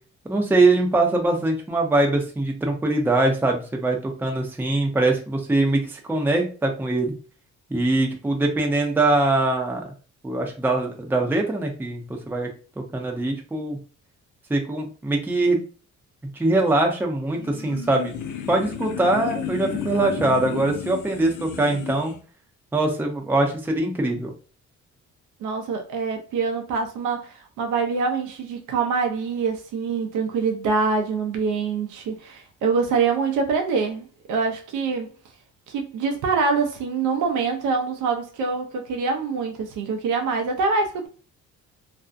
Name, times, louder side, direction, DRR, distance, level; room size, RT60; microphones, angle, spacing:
voice 1, 0.2-7.1 7.7-9.9 10.2-12.5 12.8-13.8 14.5-15.6 16.3-18.1 18.5-22.1 22.7-24.3, right 2 dB, 5° right, 0.5 m, -22 dB
sound 1, 17.3-22.2, left 8 dB, 75° left, 0.5 m, -32 dB
voice 2, 25.4-35.1 35.7-41.1, right 4 dB, 90° right, 0.5 m, -25 dB
2.5 x 2.1 x 2.4 m
cardioid pair, 90°, 30 cm